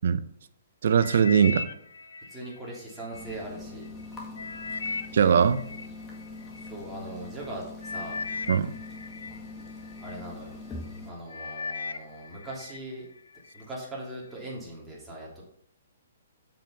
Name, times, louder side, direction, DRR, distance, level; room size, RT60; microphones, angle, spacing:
voice 1, 0.8-1.7 5.1-5.7 8.5-8.7, right 7 dB, 65° right, 13 dB, 0.7 m, -21 dB
sound 1, 1.0-3.3 3.9-6.7 7.4-7.5 7.8-10.2 10.7-11.0 11.3-12.8 13.2-13.6 14.2-14.3, left 4 dB, 90° left, 0.6 m, -38 dB
voice 2, 2.3-3.9 6.5-8.2 10.0-10.6 11.0-13.1 13.5-15.4, right 1 dB, 5° right, -6 dB, 3.1 m, -40 dB
sound 2, 3.1-11.1, left 3 dB, 15° left, 1.8 m, -43 dB
7.5 x 5.5 x 5.6 m, 0.67 s
hypercardioid pair, 145°, 0 cm